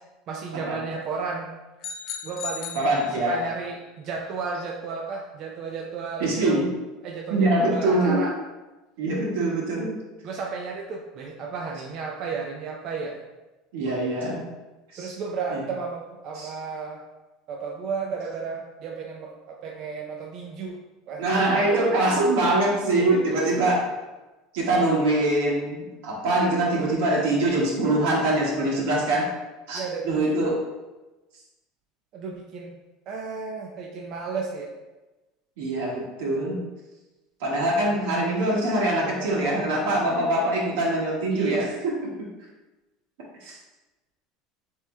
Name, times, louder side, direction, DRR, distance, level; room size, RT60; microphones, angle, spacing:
voice 1, 0.3-1.5 2.2-6.7 7.0-8.3 10.2-13.2 15.0-17.0 17.5-20.8 21.1-21.3 21.5-22.2 23.0-23.7 28.5-28.7 29.7-30.5 32.1-32.7 33.1-34.7 37.8-38.1 39.0-40.2 41.3-41.7, right 5 dB, 50° right, 0 dB, 0.5 m, -33 dB
sound 1, 1.8-3.6, left 7 dB, 50° left, 0.5 m, -37 dB
voice 2, 2.7-3.4 6.2-6.7 7.3-8.3 9.0-9.9 13.7-14.5 14.9-15.2 15.5-15.6 16.3-16.5 21.2-23.8 24.5-29.3 29.7-30.6 35.6-36.6 37.4-42.3 43.4-43.6, right 1 dB, 85° right, -3 dB, 1.5 m, -23 dB
7.3 x 3.0 x 2.2 m, 1.1 s
supercardioid pair, 135°, 0 cm